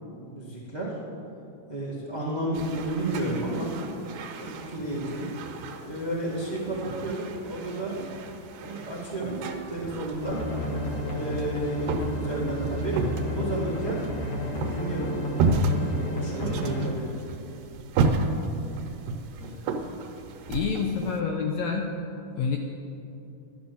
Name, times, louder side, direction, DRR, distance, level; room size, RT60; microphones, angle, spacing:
voice 1, 0.1-1.0 1.7-3.7 4.3-5.3 5.8-8.0 8.6-9.4 9.7-10.4 11.1-13.0 13.3-14.0 14.6-15.2 15.8-17.1, right 1 dB, 20° right, -5 dB, 1.2 m, -32 dB
sound 1, 2.5-21.2, right 3 dB, 80° right, 2.6 m, -32 dB
sound 2, 10.2-16.9, left 1 dB, 50° left, 2.5 m, -32 dB
voice 2, 19.4-19.7 20.5-21.9 22.4-22.6, left 6 dB, 75° left, 2 dB, 1.7 m, -28 dB
12.0 x 11.5 x 6.9 m, 2.8 s
omnidirectional pair, 3.9 m